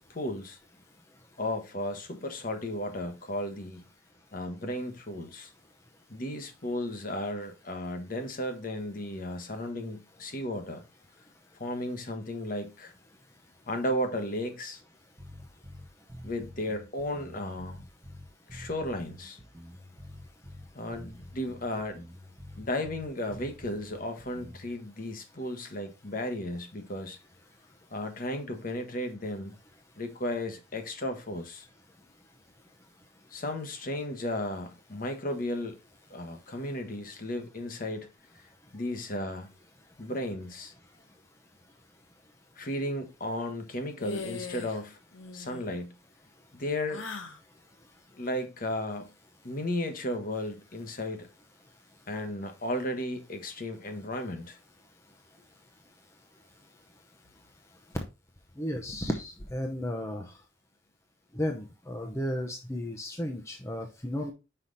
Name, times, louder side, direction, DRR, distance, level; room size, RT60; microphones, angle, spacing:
voice 1, 0.1-0.6 1.4-3.8 4.3-5.5 6.1-10.8 11.6-12.9 13.7-14.8 16.2-17.8 18.5-19.4 20.7-22.0 22.6-27.2 27.9-29.6 30.0-31.7 33.3-35.8 36.1-38.1 38.3-38.4 38.7-39.5 40.0-40.7 42.6-45.0 45.3-45.9 46.5-47.0 48.2-49.1 49.4-51.3 52.1-54.6, left 1 dB, 45° left, 1.3 m, -34 dB
sound 1, 15.2-24.8, left 1 dB, 15° right, 0.9 m, -47 dB
sound 2, 44.0-44.8 45.1-45.7 46.9-47.4, left 5 dB, 75° left, 1.2 m, -40 dB
voice 2, 58.6-60.3 61.3-64.3, equal, 15° left, 0.7 m, -33 dB
5.8 x 4.8 x 4.0 m
head